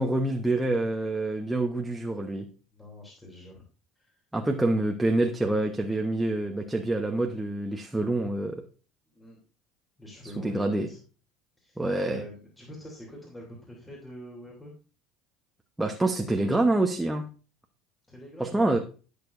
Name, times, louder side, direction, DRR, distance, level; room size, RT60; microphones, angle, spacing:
voice 1, 0.0-2.5 4.3-8.6 10.4-10.9 11.8-12.2 15.8-17.3 18.4-18.8, right 2 dB, 10° right, 2 dB, 1.0 m, -26 dB
voice 2, 2.7-3.6 4.0-4.2 9.1-9.4 10.0-11.0 11.6-14.7 18.1-18.8, left 1 dB, 10° left, -2 dB, 3.1 m, -45 dB
15.5 x 6.8 x 2.6 m, 0.35 s
supercardioid pair, 100°, 0 cm